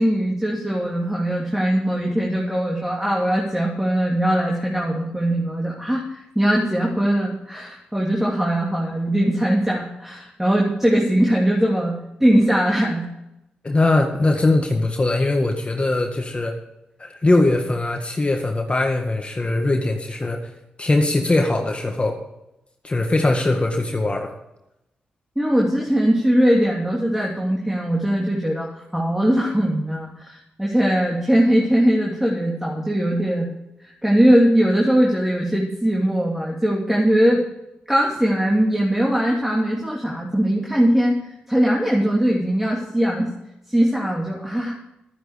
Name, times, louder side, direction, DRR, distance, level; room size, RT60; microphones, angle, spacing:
voice 1, 0.0-13.1 25.4-33.5 33.8-37.4 37.9-41.2 41.5-43.3 43.7-44.7, equal, 10° right, -3 dB, 2.9 m, -20 dB
voice 2, 13.6-16.6 17.0-20.5 20.8-22.2 22.8-24.3, left 2 dB, 30° left, 3 dB, 1.8 m, -21 dB
12.5 x 10.0 x 5.0 m, 0.87 s
cardioid pair, 60°, 4 cm